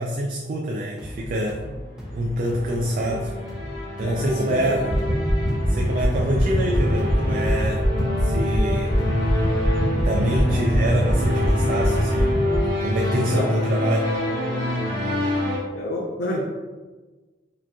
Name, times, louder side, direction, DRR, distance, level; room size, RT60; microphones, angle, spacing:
voice 1, 0.0-1.6 2.1-3.3 4.0-4.9 5.7-7.9 8.2-9.0 10.0-12.4 12.8-14.2, equal, 50° right, 0 dB, 0.3 m, -26 dB
sound 1, 1.0-9.5, equal, 5° right, 0.6 m, -38 dB
sound 2, 1.7-15.6, left 1 dB, 65° right, 1.3 m, -27 dB
voice 2, 4.0-4.8 12.8-12.9 13.3-13.5 15.7-16.4, left 1 dB, 75° left, -5 dB, 0.6 m, -28 dB
sound 3, 4.8-12.6, equal, 40° left, 1.2 m, -23 dB
4.9 x 2.9 x 2.3 m, 1.3 s
head